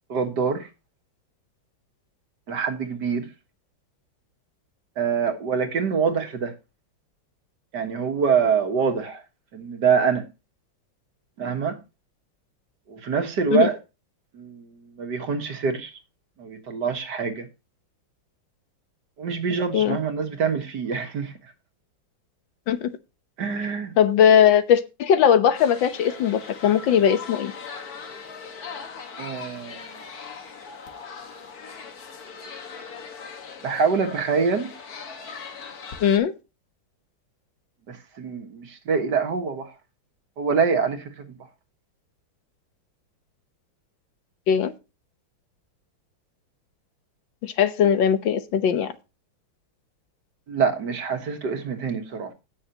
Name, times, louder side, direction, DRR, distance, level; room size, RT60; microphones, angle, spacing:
voice 1, 0.1-0.7 2.5-3.3 5.0-6.5 7.7-9.2 9.5-10.3 11.4-11.8 12.9-13.8 14.3-16.0 16.4-17.5 19.2-21.4 23.4-23.9 29.2-30.0 33.6-34.7 37.9-39.7 40.4-41.5 50.5-52.3, right 6 dB, 60° right, 2.0 m, -25 dB
voice 2, 24.0-27.5 36.0-36.3 44.5-44.7 47.4-48.9, left 8 dB, 70° left, 1.6 m, -19 dB
sound 1, 25.5-36.2, left 5 dB, 50° left, 1.9 m, -40 dB
17.0 x 6.6 x 2.8 m
omnidirectional pair, 2.1 m